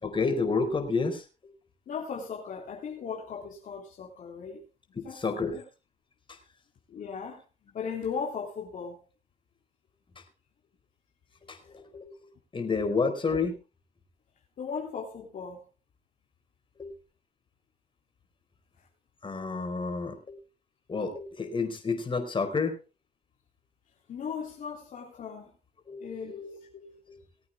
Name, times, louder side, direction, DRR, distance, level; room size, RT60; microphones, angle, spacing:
voice 1, 0.0-1.2 4.9-5.5 6.3-6.4 11.5-12.2 12.5-13.5 16.8-17.0 19.2-20.4 20.9-22.7 25.9-26.1 27.1-27.2, left 4 dB, 35° left, 4.7 m, -30 dB
voice 2, 1.9-4.6 4.9-5.6 6.9-9.0 14.6-15.6 24.1-25.5 26.0-26.9, left 6 dB, 65° left, 3.2 m, -37 dB
20.0 x 8.6 x 3.6 m
cardioid pair, 70°, 14 cm